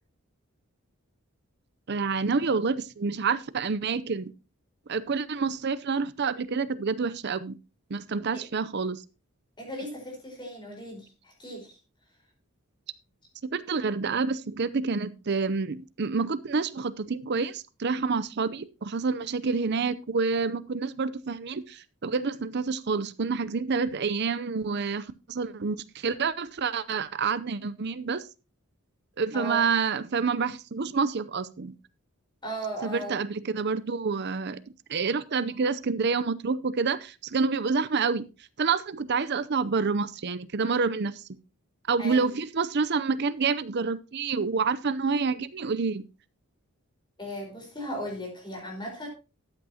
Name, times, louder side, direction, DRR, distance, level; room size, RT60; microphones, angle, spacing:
voice 1, 1.9-4.3 4.9-7.5 7.9-9.0 13.5-28.2 29.2-31.8 32.8-34.6 34.9-38.3 38.6-41.2 41.9-46.0, right 5 dB, 50° right, 15 dB, 0.6 m, -28 dB
voice 2, 9.6-11.8 29.3-29.7 32.4-33.2 42.0-42.4 47.2-49.1, equal, 20° left, 1 dB, 4.6 m, -37 dB
13.0 x 8.8 x 2.8 m, 0.31 s
head